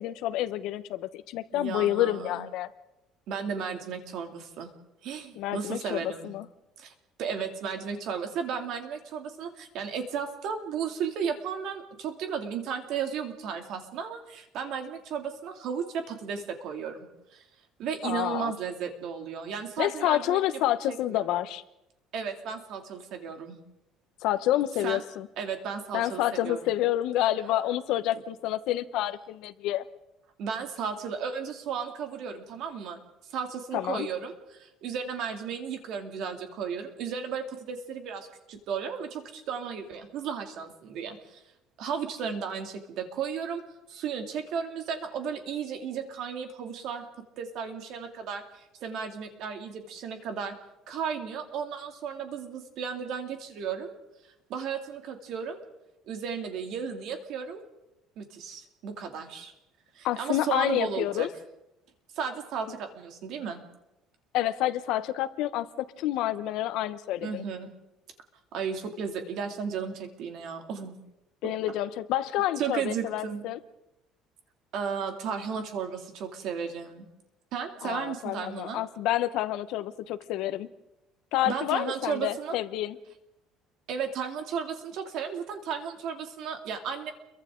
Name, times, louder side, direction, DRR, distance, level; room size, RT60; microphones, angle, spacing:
voice 1, 0.0-2.7 5.4-6.5 18.0-18.5 19.8-21.6 24.2-25.3 25.9-29.8 33.7-34.1 60.0-61.3 64.3-67.4 71.4-73.6 77.8-80.7 81.3-83.0, left 13 dB, 65° left, 13 dB, 1.0 m, -28 dB
voice 2, 1.5-2.5 3.3-4.7 5.0-6.3 6.8-6.9 7.2-17.1 17.3-17.4 17.8-20.4 20.9-21.2 22.1-23.6 24.8-25.0 25.4-26.6 30.4-33.0 33.3-41.4 41.8-43.6 43.9-47.1 47.4-50.5 50.9-53.9 54.2-55.6 56.1-57.6 58.2-59.5 59.9-61.3 62.1-63.6 67.2-67.7 68.5-71.0 72.6-73.4 74.7-77.1 77.5-78.8 81.4-82.6 83.9-87.1, right 6 dB, 55° right, 4 dB, 2.7 m, -34 dB
29.5 x 23.0 x 3.8 m, 0.89 s
cardioid pair, 170°, 0 cm